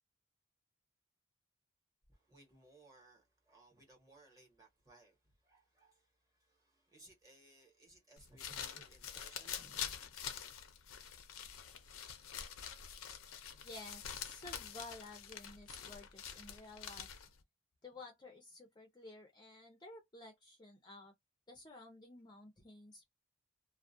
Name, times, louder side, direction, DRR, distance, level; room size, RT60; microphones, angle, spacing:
voice 1, 2.1-10.1, right 2 dB, 15° right, 1.0 m, -63 dB
sound 1, 8.2-17.4, left 8 dB, 90° left, 0.5 m, -46 dB
voice 2, 13.6-17.1 17.8-21.1 21.5-23.0, left 2 dB, 20° left, 0.5 m, -53 dB
2.3 x 2.1 x 2.6 m
head